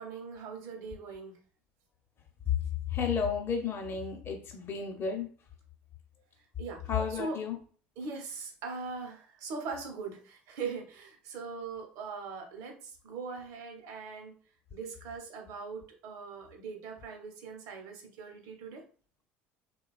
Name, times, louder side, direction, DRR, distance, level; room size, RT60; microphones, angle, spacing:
voice 1, 0.0-1.4 6.6-6.8 7.1-7.4 8.0-14.3 14.7-18.8, right 4 dB, 65° right, 3 dB, 0.7 m, -41 dB
voice 2, 2.9-5.3 6.9-7.5, left 6 dB, 40° left, 3 dB, 0.6 m, -32 dB
2.8 x 2.2 x 2.3 m, 0.42 s
hypercardioid pair, 75°, 6 cm